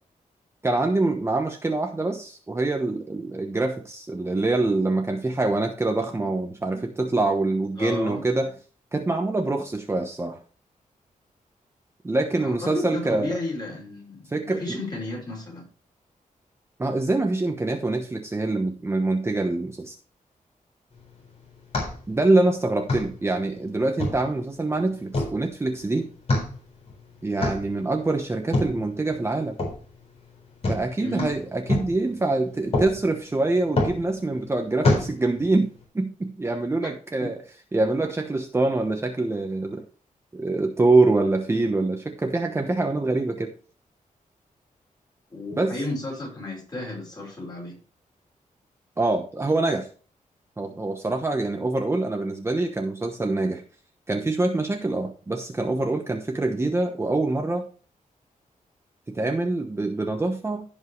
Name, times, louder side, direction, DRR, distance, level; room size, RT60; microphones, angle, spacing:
voice 1, 0.6-8.5 8.9-10.4 12.0-13.4 14.3-14.8 16.8-20.0 22.1-26.1 27.2-29.5 30.7-35.7 35.9-37.4 37.7-39.8 40.3-43.5 45.6-45.8 49.0-49.9 50.6-53.6 54.1-57.6 59.1-60.6, right 2 dB, 20° right, 3 dB, 1.0 m, -25 dB
voice 2, 7.8-8.2 12.4-15.6 31.0-31.3 36.8-36.9 45.3-47.8, left 2 dB, 30° left, -2 dB, 5.1 m, -33 dB
sound 1, 20.9-35.8, left 2 dB, 45° left, 4.0 m, -30 dB
16.0 x 5.4 x 3.2 m, 0.39 s
wide cardioid pair, 150°, 14 cm